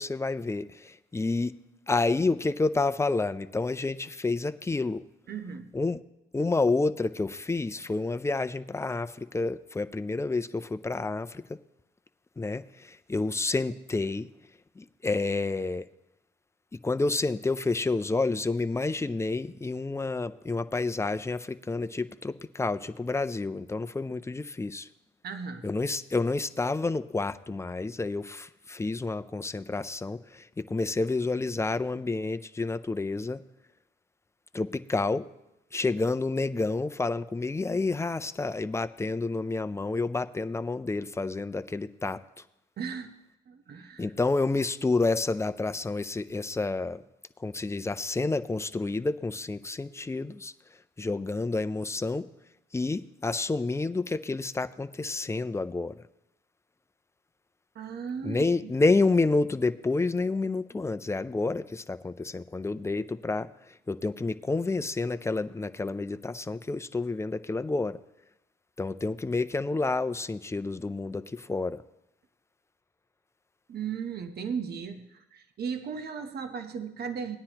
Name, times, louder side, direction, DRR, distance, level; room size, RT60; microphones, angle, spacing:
voice 1, 0.0-1.5 1.9-5.0 5.7-6.0 6.3-11.6 12.4-14.3 14.8-15.9 16.7-24.9 25.6-33.4 34.5-35.3 35.7-42.2 44.0-47.0 47.4-50.5 51.0-52.3 52.7-56.0 58.2-63.5 63.9-68.0 68.8-71.8, left 3 dB, 15° left, 10 dB, 0.4 m, -29 dB
voice 2, 5.3-5.7 25.2-25.7 42.8-43.1 43.5-44.1 57.7-58.7 73.7-77.4, right 6 dB, 55° right, 8 dB, 0.9 m, -36 dB
18.0 x 9.8 x 2.9 m, 0.89 s
cardioid pair, 90°, 20 cm